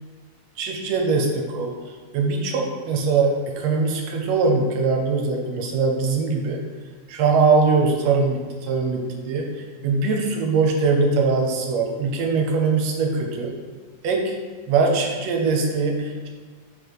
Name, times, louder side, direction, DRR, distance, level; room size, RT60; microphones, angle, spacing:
voice 1, 0.6-1.7 2.1-6.6 7.1-9.5 9.8-13.5 14.0-14.4 14.7-16.3, right 4 dB, 75° right, 2 dB, 1.7 m, -21 dB
4.6 x 4.0 x 5.1 m, 1.5 s
omnidirectional pair, 3.3 m